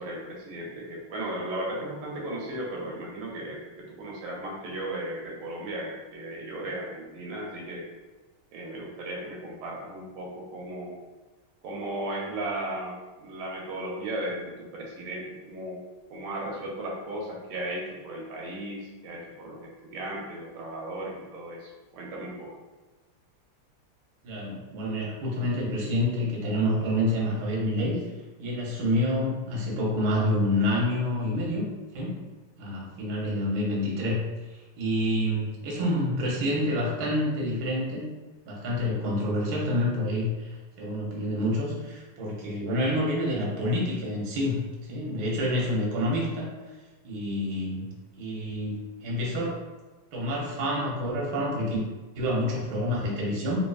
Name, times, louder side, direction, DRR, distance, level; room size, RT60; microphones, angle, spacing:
voice 1, 0.0-7.8 8.5-10.9 11.6-15.8 16.1-22.5, right 1 dB, 80° right, -2 dB, 1.6 m, -36 dB
voice 2, 24.2-28.0 28.4-31.6 31.9-32.2 32.6-34.2 34.5-38.0 38.5-44.6 44.9-46.5 47.0-47.9 48.2-49.6 50.1-51.8 52.1-53.6, left 1 dB, 60° right, -4 dB, 1.2 m, -28 dB
4.2 x 2.8 x 2.3 m, 1.2 s
omnidirectional pair, 2.4 m